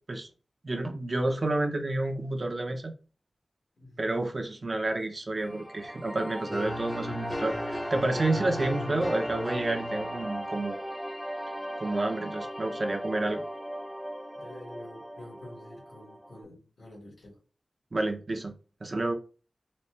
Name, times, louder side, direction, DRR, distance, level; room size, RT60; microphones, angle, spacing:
voice 1, 0.6-2.9 4.0-10.8 11.8-13.4 17.9-19.1, right 2 dB, 45° right, 0.7 m, -30 dB
voice 2, 3.8-4.3 14.4-17.4, left 1 dB, 80° left, 1.8 m, -48 dB
sound 1, 5.4-16.4, equal, ahead, 0.5 m, -38 dB
sound 2, 6.5-10.4, left 1 dB, 40° left, 0.8 m, -36 dB
4.1 x 2.3 x 3.3 m
wide cardioid pair, 65°, 0 cm